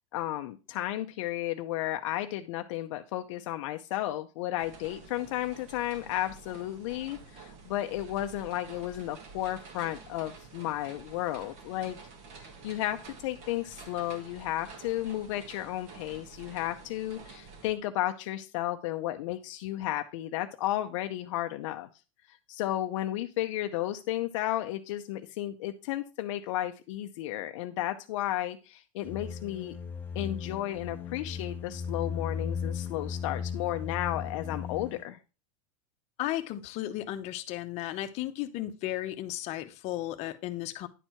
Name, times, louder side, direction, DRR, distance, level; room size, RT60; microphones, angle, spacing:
voice 1, 0.1-12.0 12.4-21.9 22.5-29.8 30.1-35.2, left 14 dB, 65° left, 7 dB, 0.6 m, -33 dB
sound 1, 4.6-17.7, right 4 dB, 40° right, 1.8 m, -49 dB
sound 2, 29.0-35.0, left 6 dB, 10° left, 0.9 m, -36 dB
voice 2, 36.2-40.9, left 14 dB, 40° left, 7 dB, 0.9 m, -34 dB
9.9 x 4.5 x 4.5 m, 0.32 s
supercardioid pair, 145°, 17 cm